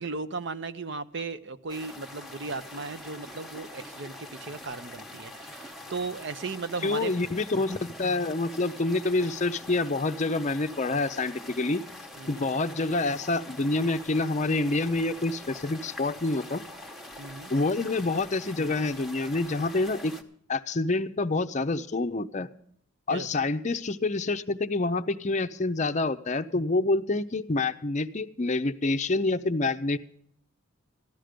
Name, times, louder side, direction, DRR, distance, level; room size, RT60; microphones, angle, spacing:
voice 1, 0.0-7.1 12.2-12.5 17.2-17.5 23.1-23.3, right 4 dB, 55° right, 12 dB, 0.7 m, -36 dB
sound 1, 1.7-20.2, left 1 dB, ahead, 0.9 m, -44 dB
voice 2, 6.8-11.8 12.3-16.6 17.5-20.1 20.5-22.5 23.1-30.0, left 2 dB, 35° left, 10 dB, 0.6 m, -27 dB
14.5 x 11.5 x 5.0 m, 0.66 s
head